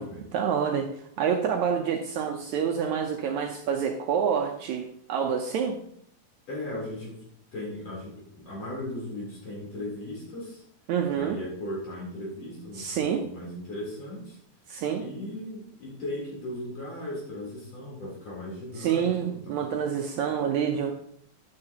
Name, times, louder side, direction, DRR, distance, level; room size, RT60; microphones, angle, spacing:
voice 1, 0.3-5.8 10.9-11.4 12.8-13.2 14.7-15.0 18.8-20.9, right 7 dB, 75° right, 3 dB, 1.9 m, -27 dB
voice 2, 6.5-7.2 7.5-10.6 11.1-14.4 15.0-19.7, left 1 dB, 50° left, -6 dB, 4.5 m, -37 dB
11.5 x 9.7 x 2.8 m, 0.68 s
omnidirectional pair, 3.7 m